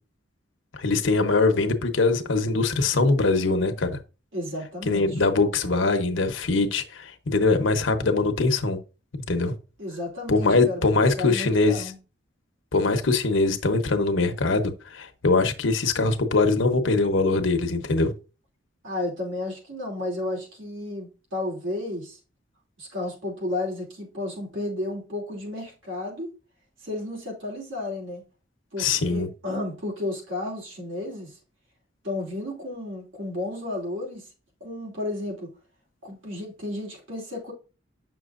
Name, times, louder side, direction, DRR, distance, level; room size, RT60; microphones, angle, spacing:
voice 1, 0.7-4.0 4.9-8.8 9.3-9.5 10.3-11.9 12.7-18.1 28.8-29.3, left 3 dB, 80° left, 0.9 m, -22 dB
voice 2, 4.3-5.2 9.8-10.8 11.2-12.0 18.8-22.2 22.8-26.3 26.8-28.2 28.7-31.4 32.0-34.3 34.6-35.5 36.0-37.5, left 2 dB, 80° right, 2.8 m, -32 dB
7.6 x 6.1 x 2.5 m
head